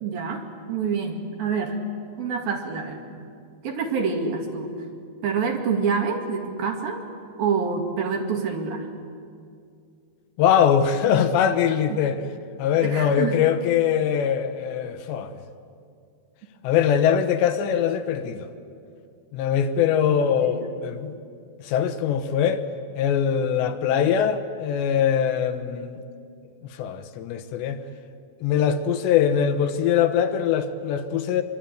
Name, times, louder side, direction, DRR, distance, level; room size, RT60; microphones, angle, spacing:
voice 1, 0.0-1.8 2.2-3.0 3.6-4.7 5.2-7.0 7.4-8.9 12.8-13.5 20.0-20.7, right 5 dB, 60° right, 3.6 m, -27 dB
voice 2, 10.4-12.2 12.6-15.4 16.6-18.5 19.3-21.2 21.6-22.6 23.0-26.0 26.8-27.8 28.4-31.4, left 8 dB, 80° left, 3.3 m, -22 dB
25.0 x 23.0 x 9.1 m
omnidirectional pair, 5.1 m